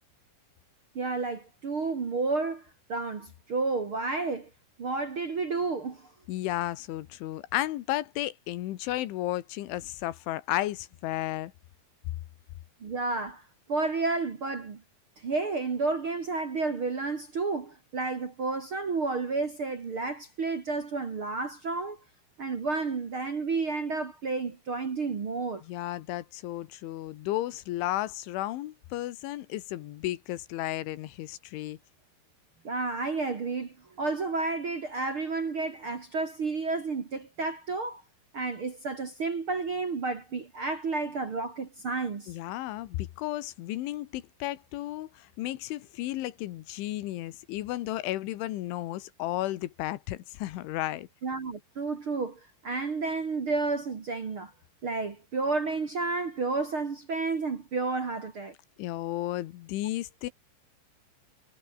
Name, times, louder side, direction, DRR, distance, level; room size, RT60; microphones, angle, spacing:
voice 1, 0.9-4.5 4.8-6.1 12.8-13.4 13.7-14.8 15.2-22.0 22.4-25.6 32.6-38.0 38.3-42.3 51.2-54.5 54.8-58.5, right 3 dB, 40° right, 2.0 m, -31 dB
voice 2, 6.3-11.5 25.6-31.8 42.3-51.1 58.8-60.3, left 15 dB, 90° left, 3.8 m, -33 dB
omnidirectional pair, 5.3 m